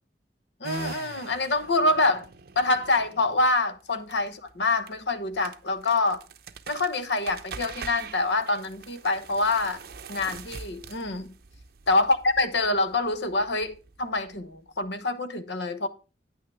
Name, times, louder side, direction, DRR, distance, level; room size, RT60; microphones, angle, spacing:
voice 1, 0.6-2.3 2.6-6.2 6.7-9.8 10.1-11.3 11.9-15.9, left 2 dB, 75° left, 1.1 m, -26 dB
sound 1, 0.6-14.9, right 5 dB, 60° right, 0.8 m, -43 dB
9.6 x 9.4 x 3.4 m
head